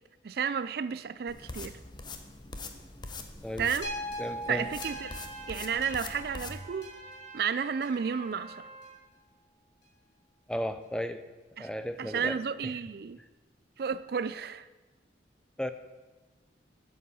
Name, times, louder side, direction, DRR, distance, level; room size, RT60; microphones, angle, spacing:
voice 1, 0.2-1.8 3.6-3.9 4.5-5.1 5.5-7.0 7.3-8.7 11.6-11.7 12.0-13.2 13.8-14.7, right 6 dB, 55° right, 0.4 m, -32 dB
sound 1, 1.3-6.6, left 3 dB, 25° left, 0.8 m, -43 dB
sound 2, 3.8-8.1 8.8-8.9, equal, 85° left, 4.2 m, -41 dB
voice 2, 4.2-4.7 10.5-11.2 11.6-12.7 15.6-15.7, equal, 5° left, 0.5 m, -35 dB
Trumpet, 4.8-9.0, right 3 dB, 35° right, 1.5 m, -48 dB
9.4 x 7.8 x 8.2 m
head